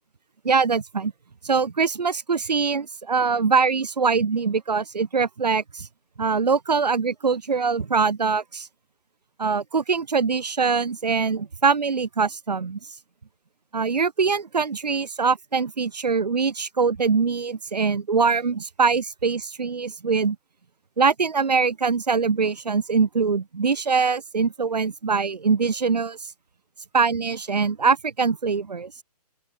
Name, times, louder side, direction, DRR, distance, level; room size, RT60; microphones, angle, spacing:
voice 1, 0.4-1.1 1.4-5.9 6.2-8.7 9.4-12.8 13.7-20.4 21.0-26.2 26.9-28.9, right 5 dB, 90° right, 7.4 m, -23 dB
open air
hypercardioid pair, 170°, 20 cm